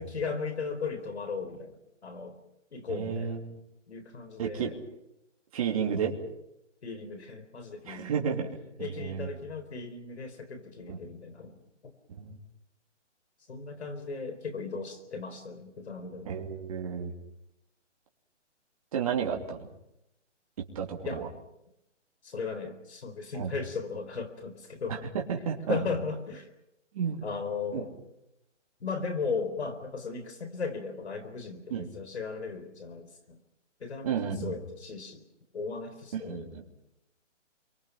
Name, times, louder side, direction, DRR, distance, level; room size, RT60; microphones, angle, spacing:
voice 1, 0.0-1.8 2.0-2.4 2.7-3.4 3.9-4.8 6.8-8.4 8.8-11.6 11.8-11.9 13.5-16.5 21.0-21.2 22.2-25.1 25.7-26.5 27.2-27.9 28.8-33.4 33.8-35.3 35.5-36.5, left 4 dB, 60° left, 8 dB, 4.2 m, -36 dB
voice 2, 2.9-3.6 4.4-4.7 5.5-6.1 7.9-8.5 8.8-9.3 10.9-11.0 12.2-12.4 16.2-17.1 18.9-19.7 20.7-21.3 23.3-23.5 24.9-25.8 26.9-27.2 27.7-27.8 31.7-31.9 34.0-34.6 36.3-36.6, right 7 dB, 30° right, 0 dB, 2.9 m, -32 dB
28.0 x 24.0 x 5.8 m, 0.85 s
hypercardioid pair, 170°, 37 cm